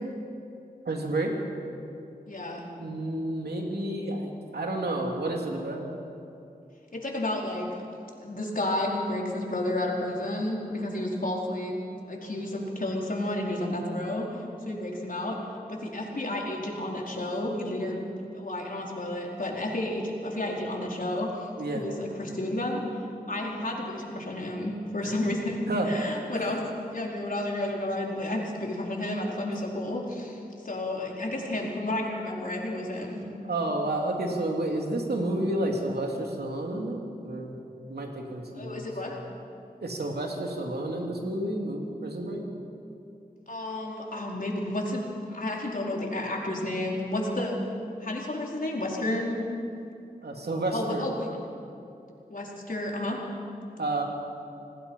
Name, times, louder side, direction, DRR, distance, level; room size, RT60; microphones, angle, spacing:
voice 1, 0.8-1.3 2.8-5.9 21.6-21.8 25.7-26.5 33.4-37.5 37.9-38.9 39.8-42.5 50.2-51.1 53.8-54.0, right 1 dB, 85° right, 1 dB, 3.0 m, -30 dB
voice 2, 2.3-2.7 6.9-7.8 8.2-11.7 12.1-15.4 15.7-18.0 18.3-21.5 21.7-23.0 23.3-26.6 26.9-33.2 38.6-39.2 43.5-45.0 45.3-47.6 48.0-49.5 50.7-51.3 52.3-53.2, left 1 dB, 60° left, -2 dB, 4.5 m, -31 dB
27.5 x 18.5 x 5.6 m, 2.7 s
cardioid pair, 45°, 16 cm